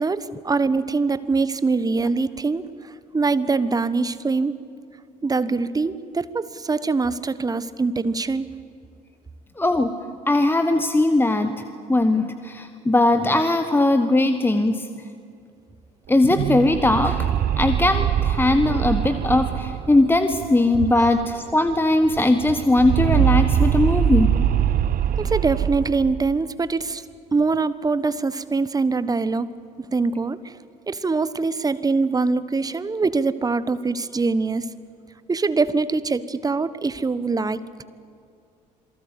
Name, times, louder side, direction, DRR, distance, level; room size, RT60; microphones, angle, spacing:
voice 1, 0.0-2.7 3.1-4.5 5.2-8.5 25.2-27.0 27.3-29.5 29.9-30.4 30.9-34.6 35.3-37.8, right 4 dB, 15° right, 15 dB, 1.2 m, -23 dB
voice 2, 9.6-10.0 10.3-11.6 11.9-14.9 16.1-17.3 17.6-24.4, left 2 dB, 10° left, 9 dB, 1.4 m, -19 dB
sound 1, 16.1-21.4 21.7-21.8 22.0-26.4, right 10 dB, 45° right, 0.9 m, -23 dB
27.5 x 23.0 x 8.4 m, 2.3 s
figure-of-eight pair, 55°, 21 cm